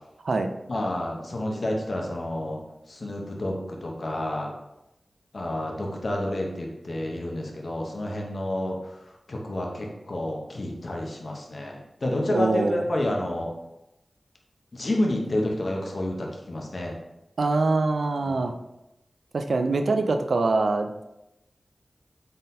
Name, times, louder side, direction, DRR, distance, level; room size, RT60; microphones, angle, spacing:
voice 1, 0.7-2.6 2.9-4.5 5.3-8.8 9.3-13.5 14.7-17.0 18.2-18.4, left 1 dB, 65° left, 0 dB, 0.8 m, -29 dB
voice 2, 12.3-12.9 17.4-18.5 19.3-21.0, right 3 dB, 85° right, 6 dB, 0.3 m, -24 dB
3.9 x 3.9 x 2.7 m, 0.91 s
wide cardioid pair, 55°, 0 cm